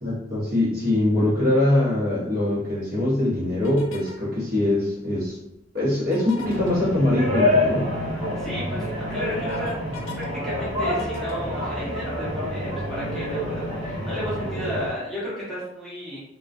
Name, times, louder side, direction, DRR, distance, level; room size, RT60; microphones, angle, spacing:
voice 1, 0.0-5.4 5.7-7.9, left 1 dB, 45° right, -7 dB, 1.0 m, -23 dB
sound 1, 3.6-4.3 6.0-6.7 8.4-8.5 8.9-10.3 10.6-12.2, left 4 dB, 85° left, 0.4 m, -42 dB
sound 2, 6.4-14.9, left 1 dB, 30° right, 0.6 m, -27 dB
voice 2, 8.4-9.7 10.2-16.2, left 1 dB, ahead, -11 dB, 0.9 m, -33 dB
2.3 x 2.3 x 2.4 m, 0.84 s
head